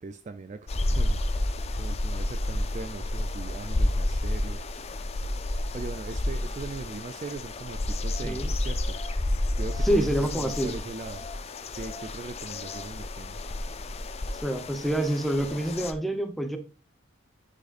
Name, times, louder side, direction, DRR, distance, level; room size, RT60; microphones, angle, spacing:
voice 1, 0.0-4.7 5.7-9.0 9.6-11.2 11.7-13.5 15.8-15.9, right 3 dB, 35° right, 0.3 m, -40 dB
sound 1, 0.7-15.9, left 1 dB, 30° left, 0.5 m, -30 dB
voice 2, 9.8-10.8 14.4-16.6, right 1 dB, ahead, 0.8 m, -27 dB
10.5 x 5.1 x 2.5 m
head